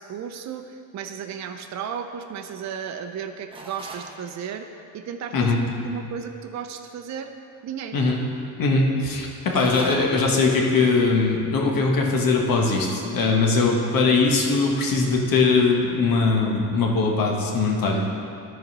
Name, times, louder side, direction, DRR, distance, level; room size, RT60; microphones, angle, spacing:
voice 1, 0.0-5.6 5.8-7.3 7.6-8.0, right 7 dB, 45° right, 5 dB, 0.6 m, -34 dB
sound 1, 3.5-4.2 9.4-10.3, right 2 dB, 15° right, 1.0 m, -37 dB
voice 2, 5.3-5.6 7.9-8.2 8.6-18.2, left 3 dB, 55° left, 0 dB, 1.5 m, -21 dB
12.5 x 4.2 x 5.5 m, 2.6 s
cardioid pair, 105°, 40 cm